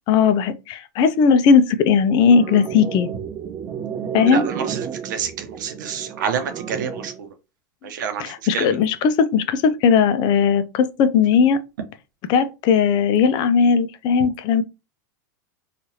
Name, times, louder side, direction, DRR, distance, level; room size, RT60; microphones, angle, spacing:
voice 1, 0.1-3.1 4.1-4.4 8.2-11.6 12.3-14.6, left 6 dB, 45° left, 0.4 m, -17 dB
sound 1, 2.2-7.2, right 7 dB, 35° right, 0.4 m, -31 dB
voice 2, 4.3-7.3 7.8-8.7, right 7 dB, 80° right, 0.7 m, -28 dB
3.0 x 2.4 x 2.8 m
hypercardioid pair, 105°, 10 cm